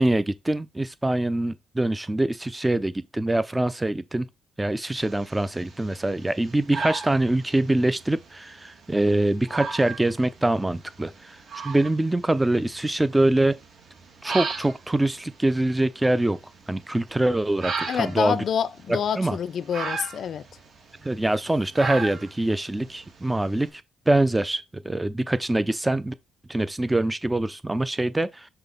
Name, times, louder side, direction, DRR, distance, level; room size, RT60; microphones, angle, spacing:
voice 1, 0.0-4.3 4.6-11.4 11.6-13.6 14.2-16.4 16.7-18.4 18.9-19.4 21.0-26.1 26.5-28.5, right 1 dB, 10° right, 0.6 m, -24 dB
sound 1, 5.0-23.7, right 4 dB, 50° right, 2.2 m, -37 dB
voice 2, 17.9-20.4, left 8 dB, 60° left, 0.5 m, -27 dB
6.0 x 2.9 x 5.4 m
cardioid pair, 90°, 0 cm